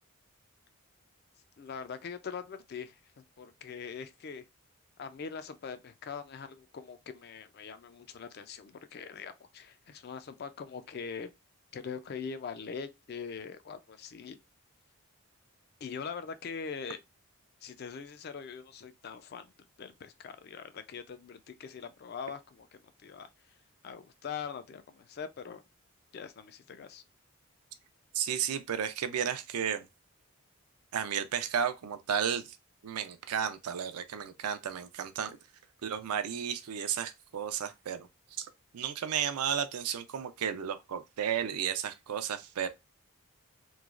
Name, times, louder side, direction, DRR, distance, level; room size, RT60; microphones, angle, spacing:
voice 1, 1.6-4.4 5.0-11.3 11.7-14.4 15.8-17.0 17.6-19.5 19.8-23.3 23.8-25.6 26.1-27.0, left 6 dB, 45° left, 0.3 m, -42 dB
voice 2, 28.1-29.9 30.9-32.6 32.8-35.4 35.8-38.1 38.4-42.7, right 8 dB, 90° right, 0.4 m, -33 dB
3.1 x 2.2 x 2.3 m
head